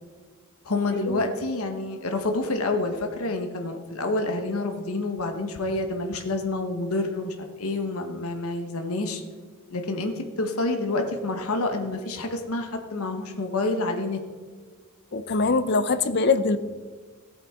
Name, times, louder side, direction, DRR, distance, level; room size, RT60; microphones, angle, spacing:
voice 1, 0.6-9.2 9.7-14.2, left 2 dB, 85° left, 5 dB, 1.1 m, -28 dB
voice 2, 15.1-16.6, left 4 dB, 50° left, 13 dB, 0.6 m, -23 dB
15.0 x 8.7 x 3.7 m, 1.5 s
head